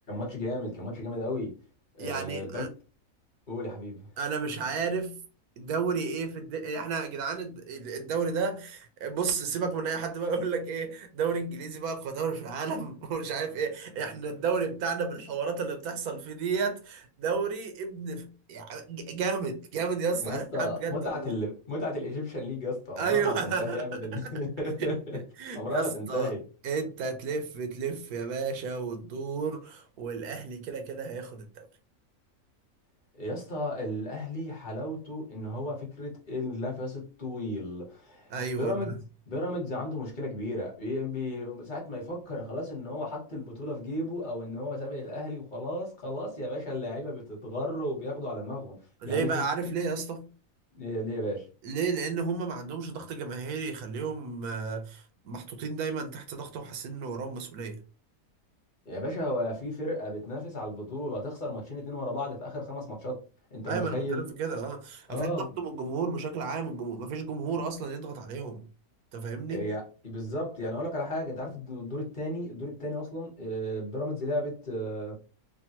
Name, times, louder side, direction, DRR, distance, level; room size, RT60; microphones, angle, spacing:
voice 1, 0.1-1.6 2.0-2.7 3.5-4.1 20.2-25.2 25.5-26.4 33.2-39.0 39.3-48.8 49.0-49.4 50.7-51.5 58.8-63.2 63.5-64.3 65.1-65.5 69.5-75.2, left 1 dB, 35° left, 1.1 m, -34 dB
voice 2, 2.0-2.7 4.2-5.2 5.6-21.3 23.0-23.9 24.8-26.3 26.6-31.7 38.3-38.9 49.0-50.3 51.6-57.8 63.7-68.6 69.1-69.7, right 5 dB, 85° right, 1.2 m, -32 dB
3.4 x 2.2 x 2.8 m
omnidirectional pair, 1.6 m